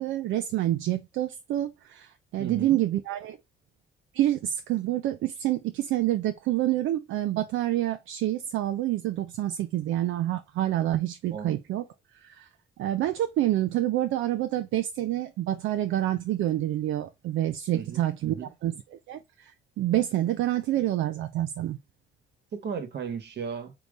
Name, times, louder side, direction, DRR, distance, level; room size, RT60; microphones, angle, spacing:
voice 1, 0.0-3.4 4.1-11.8 12.2-12.5 12.8-18.3 18.6-21.8, right 13 dB, 80° right, 0.4 m, -27 dB
voice 2, 2.4-2.8 11.3-11.6 17.7-18.5 22.5-23.7, right 6 dB, 60° right, 1.3 m, -35 dB
3.6 x 2.8 x 4.0 m
cardioid pair, 90°, 20 cm